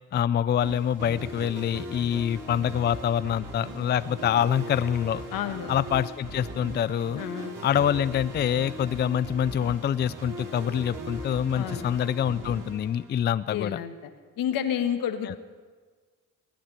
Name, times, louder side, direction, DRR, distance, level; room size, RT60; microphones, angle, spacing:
voice 1, 0.1-5.2 5.7-7.2 7.6-13.8 15.3-15.4, left 9 dB, 30° left, 16 dB, 0.4 m, -26 dB
sound 1, 0.6-13.5, right 1 dB, 60° right, 4.6 m, -39 dB
voice 2, 5.3-5.7 7.2-7.5 11.5-11.9 13.5-13.9 14.4-15.4, left 9 dB, 80° left, 8 dB, 1.4 m, -30 dB
20.0 x 8.8 x 8.0 m, 1.5 s
cardioid pair, 80°, 33 cm